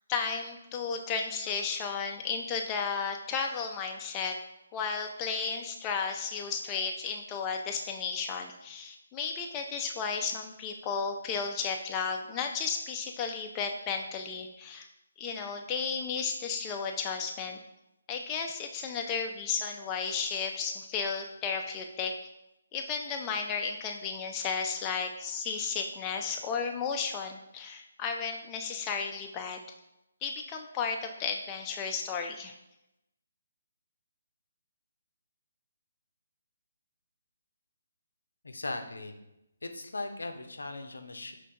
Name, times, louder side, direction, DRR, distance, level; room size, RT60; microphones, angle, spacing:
voice 1, 0.1-4.4 4.7-14.9 15.2-17.6 18.1-22.1 22.7-29.6 30.2-32.5, left 5 dB, 20° left, 2 dB, 0.3 m, -33 dB
voice 2, 38.4-39.2 39.6-41.3, left 2 dB, 70° left, 6 dB, 0.5 m, -38 dB
5.5 x 2.5 x 3.4 m, 0.89 s
figure-of-eight pair, 145°, 0 cm